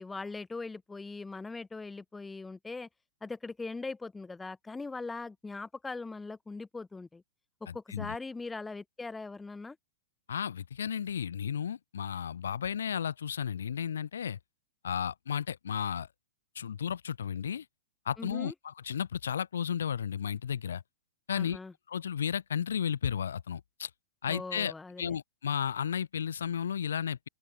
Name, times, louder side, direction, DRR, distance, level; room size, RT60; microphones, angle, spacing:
voice 1, 0.0-2.9 3.2-7.2 7.7-9.8 18.2-18.5 21.3-21.7 24.3-25.2, left 3 dB, 10° left, 0.9 m, -40 dB
voice 2, 7.7-8.2 10.3-14.4 14.8-16.1 16.6-17.7 18.1-20.8 21.3-21.6 21.9-23.9 24.2-27.3, left 8 dB, 65° left, 0.3 m, -33 dB
open air
figure-of-eight pair, 105°, 0 cm